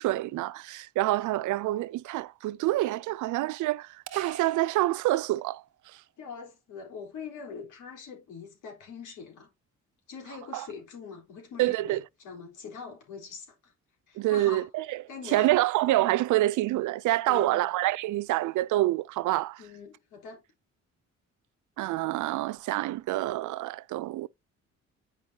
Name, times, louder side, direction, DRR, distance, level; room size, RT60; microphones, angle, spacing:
voice 1, 0.0-5.6 10.5-10.7 11.6-12.0 14.2-19.6 21.8-24.3, right 16 dB, 75° right, 0.5 m, -27 dB
sound 1, 4.1-5.7, right 10 dB, 55° right, 0.8 m, -43 dB
voice 2, 6.2-9.5 10.1-13.7 14.1-14.7 15.1-15.5 17.3-17.7 19.6-20.4, left 5 dB, 85° left, 3.8 m, -43 dB
8.8 x 5.3 x 2.8 m
cardioid pair, 90°, 30 cm